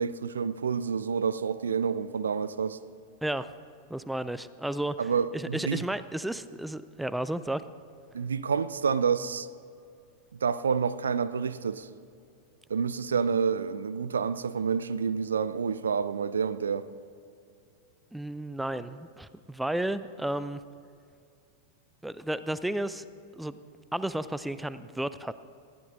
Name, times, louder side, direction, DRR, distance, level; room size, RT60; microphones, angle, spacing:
voice 1, 0.0-2.8 5.0-5.8 8.1-9.5 10.4-11.9 12.7-16.8, right 6 dB, 70° right, 0.4 m, -28 dB
voice 2, 3.9-5.0 5.3-7.6 18.1-20.6 22.0-23.0 23.4-23.6 23.9-25.3, right 1 dB, 5° right, 0.4 m, -32 dB
20.0 x 14.0 x 2.6 m
figure-of-eight pair, 90°, 0 cm